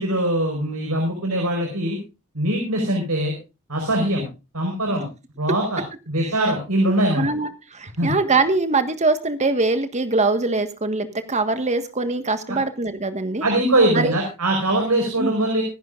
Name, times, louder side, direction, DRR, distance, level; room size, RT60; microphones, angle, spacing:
voice 1, 0.0-2.0 2.3-3.3 3.7-4.2 4.5-5.0 5.4-5.8 6.1-7.2 8.0-8.1 12.5-12.6 13.4-15.6, right 1 dB, 85° right, 2 dB, 5.0 m, -22 dB
voice 2, 6.9-13.5 13.9-14.1 15.2-15.3, right 3 dB, 30° right, 9 dB, 1.5 m, -23 dB
25.0 x 11.0 x 2.5 m, 0.30 s
head